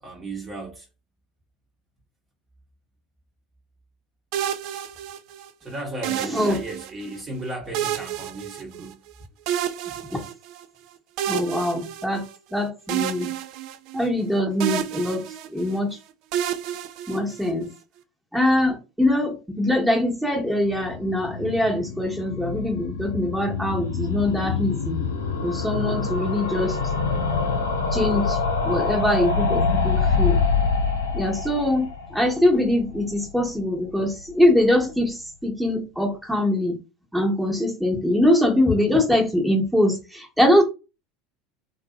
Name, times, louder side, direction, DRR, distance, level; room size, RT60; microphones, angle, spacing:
voice 1, 0.0-0.9 5.6-9.0, right 2 dB, 25° right, 0.9 m, -35 dB
sound 1, 4.3-5.5 6.0-7.2 7.7-9.1 9.5-10.6 11.2-12.5 12.9-14.3 14.6-15.8 16.3-17.7, right 10 dB, 55° right, 0.3 m, -30 dB
voice 2, 11.3-12.2 12.5-13.3 13.9-15.2 15.5-15.9 17.1-17.7 18.3-25.0 25.4-26.8 27.9-28.4 28.6-30.4 31.1-35.2 35.4-36.8 37.1-40.6, left 1 dB, 5° right, 1.0 m, -22 dB
sound 2, 20.5-33.6 33.9-34.0 34.2-34.3 34.5-34.6, left 4 dB, 80° left, 0.6 m, -26 dB
2.8 x 2.7 x 2.3 m
hypercardioid pair, 75°, 0 cm